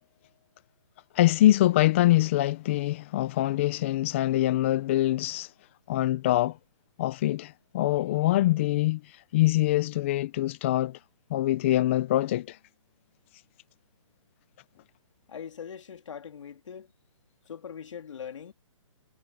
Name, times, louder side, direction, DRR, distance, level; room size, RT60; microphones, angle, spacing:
voice 1, 1.1-5.5 5.9-6.6 7.0-11.0 11.3-12.6, left 15 dB, 25° left, 0.5 m, -24 dB
voice 2, 15.3-16.9 17.5-18.5, left 7 dB, 60° left, 2.9 m, -41 dB
hypercardioid pair, 165°, 17 cm